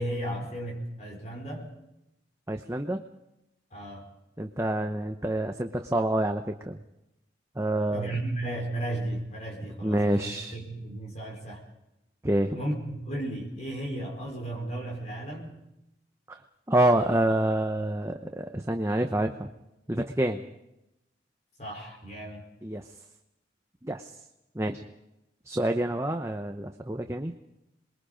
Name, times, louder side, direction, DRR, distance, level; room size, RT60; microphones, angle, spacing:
voice 1, 0.0-1.7 3.7-4.1 7.9-11.6 12.5-15.6 21.6-22.5, right 1 dB, 40° left, 0 dB, 4.5 m, -34 dB
voice 2, 2.5-3.0 4.4-6.8 7.6-8.1 9.8-10.6 12.2-12.6 16.3-16.4 16.7-19.5 19.9-20.4 22.6-22.9 23.8-24.1 24.5-24.8 25.5-27.3, right 1 dB, 15° right, 5 dB, 0.8 m, -27 dB
27.5 x 21.5 x 5.1 m, 0.89 s
head